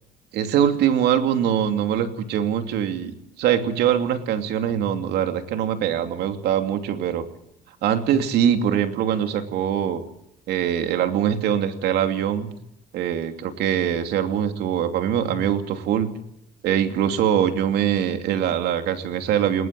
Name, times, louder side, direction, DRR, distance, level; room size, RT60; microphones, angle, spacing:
voice 1, 0.3-3.1 3.4-7.3 7.8-10.0 10.5-12.5 12.9-16.1 16.6-19.7, right 9 dB, 80° right, 7 dB, 2.9 m, -23 dB
20.5 x 19.0 x 7.8 m, 0.74 s
cardioid pair, 110°, 17 cm